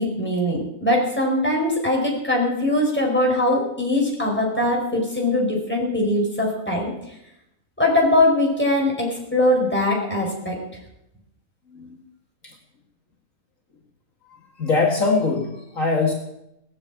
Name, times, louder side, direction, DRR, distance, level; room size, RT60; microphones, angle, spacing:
voice 1, 0.0-6.9 7.8-10.6, left 1 dB, 5° left, -1 dB, 4.9 m, -21 dB
voice 2, 11.7-12.0 12.4-12.5 14.3-16.1, left 3 dB, 60° left, 0 dB, 2.2 m, -23 dB
19.0 x 7.6 x 8.5 m, 0.84 s
omnidirectional pair, 1.6 m